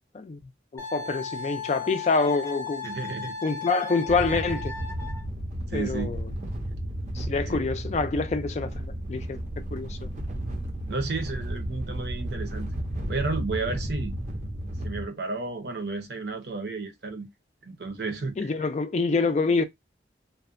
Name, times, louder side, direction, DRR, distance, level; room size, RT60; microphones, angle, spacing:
voice 1, 0.7-2.9 3.4-4.7 5.7-6.3 7.1-9.4 9.7-10.0 18.4-19.6, left 4 dB, 40° left, 0.3 m, -26 dB
Wind instrument woodwind instrument, 0.8-5.2, left 4 dB, 15° left, 0.7 m, -36 dB
voice 2, 2.8-3.4 5.7-6.2 7.5-7.6 10.8-12.7 13.1-14.1 14.8-17.3 17.6-18.5, right 3 dB, 75° right, 0.7 m, -32 dB
sound 1, 4.1-15.0, right 1 dB, 40° right, 0.5 m, -33 dB
2.6 x 2.1 x 2.4 m
head